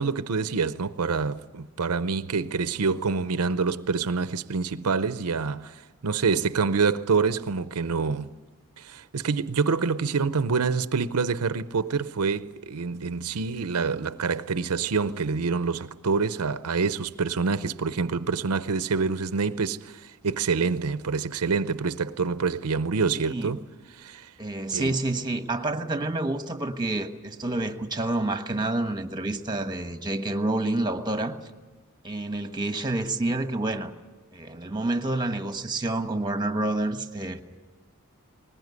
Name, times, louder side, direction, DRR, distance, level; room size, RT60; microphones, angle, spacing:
voice 1, 0.0-8.3 8.8-23.6 23.9-24.3 24.7-25.0, right 5 dB, 90° right, 0.7 m, -26 dB
voice 2, 23.1-23.6 24.4-31.4 32.0-33.9 34.3-37.4, right 2 dB, 20° right, 1.3 m, -28 dB
20.5 x 20.0 x 9.5 m
head